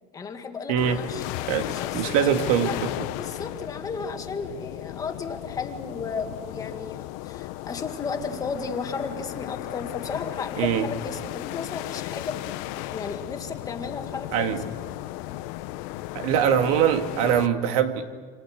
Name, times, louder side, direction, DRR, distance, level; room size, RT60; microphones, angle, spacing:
voice 1, 0.1-1.2 1.7-12.4 12.9-14.6, left 5 dB, 20° left, 5 dB, 1.9 m, -34 dB
voice 2, 0.7-1.0 1.5-2.9 10.6-10.9 14.3-14.6 16.1-18.1, right 8 dB, 90° right, 6 dB, 2.3 m, -23 dB
sound 1, 0.8-17.5, left 16 dB, 70° left, 1.0 m, -35 dB
27.5 x 26.5 x 6.6 m, 1.5 s
cardioid pair, 170°, 18 cm